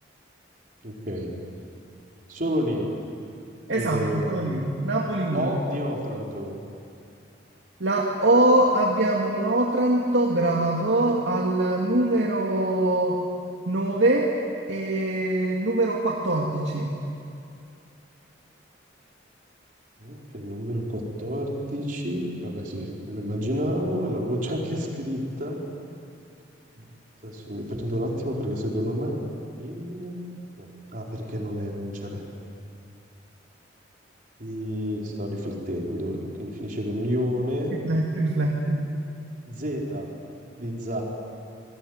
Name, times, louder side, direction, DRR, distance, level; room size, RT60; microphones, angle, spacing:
voice 1, 0.8-1.3 2.3-2.9 3.7-4.2 5.3-6.5 20.0-25.6 26.8-26.9 27.2-29.2 29.6-30.2 30.6-32.2 34.4-37.7 39.5-40.1 40.6-41.0, equal, 45° right, -1 dB, 4.6 m, -30 dB
voice 2, 3.7-5.5 7.8-13.2 13.7-14.3 14.7-16.9 37.7-38.8, right 1 dB, 75° right, -2 dB, 2.4 m, -23 dB
28.0 x 20.5 x 9.6 m, 2.5 s
head